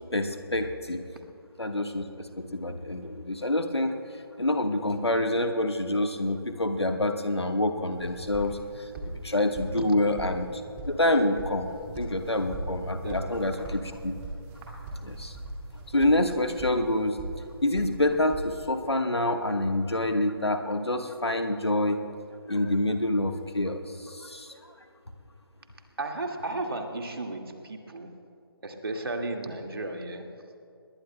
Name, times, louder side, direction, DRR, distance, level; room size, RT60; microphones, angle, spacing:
voice 1, 0.1-1.0 1.6-4.0 4.4-10.6 10.9-11.7 12.0-14.1 15.0-15.4 15.9-17.2 17.6-22.0 22.5-24.6, left 1 dB, 85° left, 6 dB, 1.4 m, -27 dB
sound 1, 7.9-18.9, right 2 dB, 15° right, 2.1 m, -40 dB
voice 2, 13.0-13.6 26.0-28.1 28.6-30.3, right 2 dB, 65° right, 3 dB, 1.9 m, -34 dB
23.5 x 21.0 x 2.2 m, 2.4 s
figure-of-eight pair, 145°, 13 cm